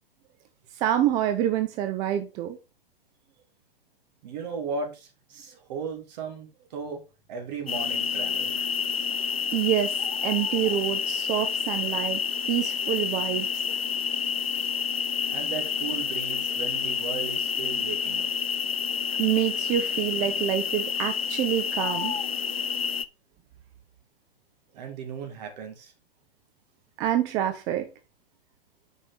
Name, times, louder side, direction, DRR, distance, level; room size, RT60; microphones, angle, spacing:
voice 1, 0.8-2.6 9.5-12.2 12.5-13.5 19.2-22.2 27.0-27.9, right 12 dB, 15° right, 0.3 m, -27 dB
voice 2, 4.2-7.0 7.3-8.6 15.3-18.3 24.7-25.9, right 5 dB, 45° right, 2.4 m, -36 dB
sound 1, 7.7-23.0, left 6 dB, 80° left, 0.7 m, -29 dB
6.7 x 5.4 x 3.9 m
figure-of-eight pair, 110°, 30 cm